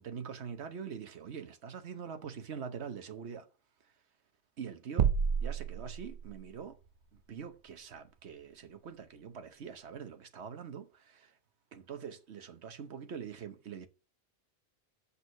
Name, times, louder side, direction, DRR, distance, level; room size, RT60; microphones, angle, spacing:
voice 1, 0.0-3.5 4.6-5.1 5.4-6.8 7.3-11.3 11.7-13.9, right 7 dB, 80° right, 1.3 m, -44 dB
sound 1, 5.0-6.6, right 7 dB, 55° right, 0.7 m, -30 dB
6.3 x 5.5 x 6.6 m
omnidirectional pair, 1.1 m